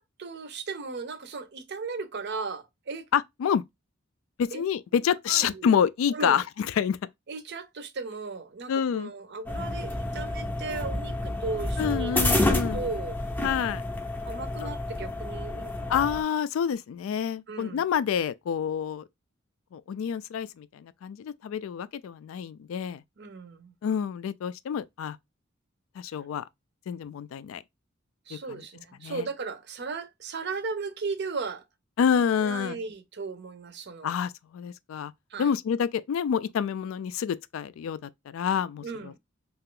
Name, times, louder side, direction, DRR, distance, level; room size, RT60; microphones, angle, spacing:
voice 1, 0.0-3.1 4.5-4.6 5.3-5.7 6.1-6.4 7.3-13.2 14.3-16.0 17.5-17.8 23.2-23.7 28.3-31.6 32.4-34.1 35.3-35.5 38.8-39.2, right 4 dB, 55° right, 0.6 m, -36 dB
voice 2, 3.1-3.6 4.4-7.0 8.7-9.1 11.8-12.8 13.4-13.8 14.6-14.7 15.9-19.0 19.7-23.0 23.8-25.2 26.0-26.4 26.9-27.6 28.3-28.4 29.0-29.2 32.0-32.8 34.0-35.1 35.4-39.2, left 7 dB, 75° left, 0.3 m, -28 dB
sound 1, 9.5-16.2, left 1 dB, 10° left, 0.5 m, -29 dB
2.8 x 2.4 x 3.6 m
head